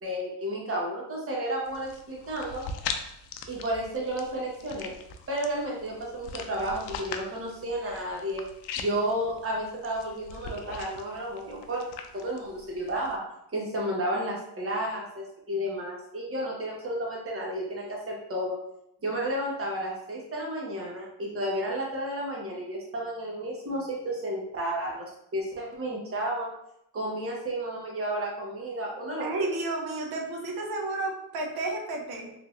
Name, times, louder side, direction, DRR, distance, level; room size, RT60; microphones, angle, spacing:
voice 1, 0.0-2.6 3.5-4.9 5.3-8.4 8.8-11.8 12.1-13.2 13.5-18.6 19.0-25.0 25.3-26.5 26.9-29.5, right 1 dB, 30° right, -3 dB, 1.2 m, -32 dB
sound 1, 1.6-13.2, left 5 dB, 80° left, 0.5 m, -41 dB
voice 2, 29.2-32.3, right 2 dB, 60° right, 1 dB, 0.9 m, -32 dB
3.4 x 2.9 x 2.4 m, 0.79 s
cardioid pair, 95°, 42 cm